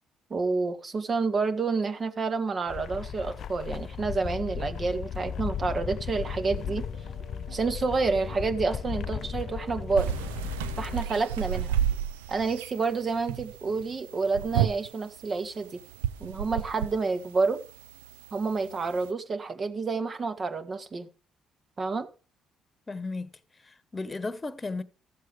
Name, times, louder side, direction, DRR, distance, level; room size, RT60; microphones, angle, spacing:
voice 1, 0.3-6.8 7.5-10.1 10.8-11.7 12.3-15.8 16.2-17.6 18.3-21.1 21.8-22.1, right 4 dB, 45° right, 1.9 m, -29 dB
sound 1, 2.7-11.0, left 8 dB, 60° left, 0.6 m, -36 dB
sound 2, 6.1-11.6, right 3 dB, 70° right, 3.3 m, -50 dB
sound 3, 9.9-19.1, right 10 dB, 90° right, 0.5 m, -33 dB
voice 2, 22.9-23.3 23.6-24.8, left 3 dB, 25° left, 1.3 m, -34 dB
14.0 x 7.6 x 4.8 m
hypercardioid pair, 55°, 0 cm